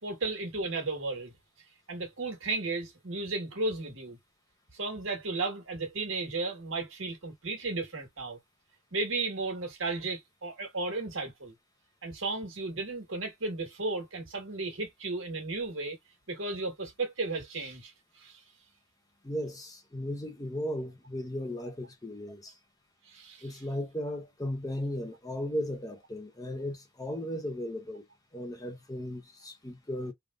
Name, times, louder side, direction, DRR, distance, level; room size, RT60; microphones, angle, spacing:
voice 1, 0.0-1.3 1.9-4.2 4.7-8.4 8.9-11.5 12.0-16.0 16.3-18.4 23.1-23.5, right 3 dB, 85° right, 1.5 m, -34 dB
voice 2, 19.2-22.5 23.4-28.0 28.3-30.1, left 1 dB, 20° left, 0.7 m, -36 dB
3.4 x 2.5 x 2.4 m
head